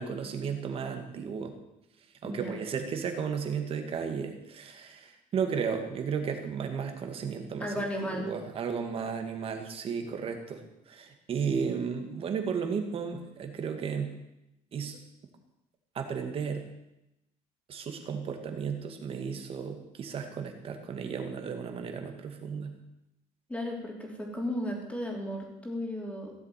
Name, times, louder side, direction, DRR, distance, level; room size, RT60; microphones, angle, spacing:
voice 1, 0.0-1.5 2.2-14.1 14.7-15.0 15.9-16.7 17.7-22.8, right 6 dB, 40° right, 6 dB, 2.2 m, -34 dB
voice 2, 2.2-2.6 7.6-8.3 23.5-26.3, left 1 dB, 10° left, 1 dB, 3.3 m, -34 dB
16.5 x 7.5 x 9.3 m, 0.88 s
cardioid pair, 170°, 15 cm